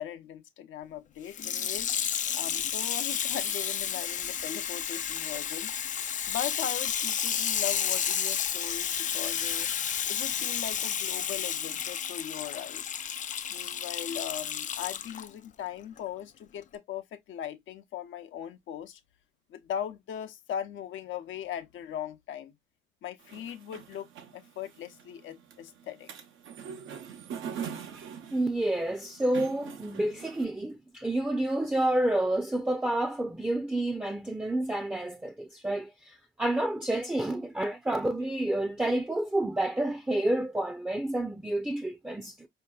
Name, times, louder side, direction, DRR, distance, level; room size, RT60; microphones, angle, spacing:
voice 1, 0.0-5.7 6.3-9.7 10.1-12.9 13.5-19.0 19.5-22.5 23.0-24.1 24.3-26.1, left 10 dB, 75° left, 0.7 m, -39 dB
Water tap faucet / Sink (filling or washing), 1.3-15.3 16.0-16.1, left 9 dB, 40° left, 0.4 m, -31 dB
sound 1, 23.2-30.4, right 7 dB, 80° right, 0.9 m, -43 dB
voice 2, 28.3-42.5, right 1 dB, 5° right, 0.5 m, -29 dB
4.6 x 2.8 x 2.2 m
cardioid pair, 90°, 20 cm